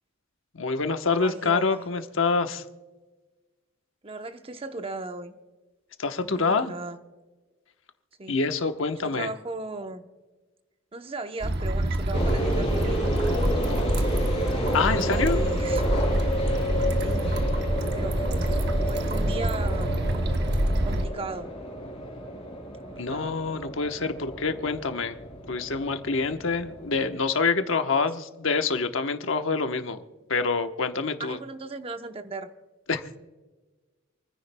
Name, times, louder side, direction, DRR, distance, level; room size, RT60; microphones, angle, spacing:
voice 1, 0.5-2.6 6.0-6.7 8.3-9.3 14.7-15.4 23.0-25.2 25.5-30.0 30.3-31.4 32.9-33.2, left 4 dB, 80° left, 1.0 m, -26 dB
voice 2, 1.2-1.8 4.0-5.3 6.2-7.0 8.2-8.4 9.0-10.1 10.9-13.2 14.7-15.8 17.0-17.4 17.9-20.0 20.8-21.5 22.8-23.4 31.2-32.5, right 2 dB, 30° right, 0.8 m, -37 dB
sound 1, 11.4-21.1, right 1 dB, 55° right, 0.9 m, -26 dB
sound 2, 12.1-27.3, equal, 30° left, 3.6 m, -32 dB
28.0 x 10.0 x 2.2 m
head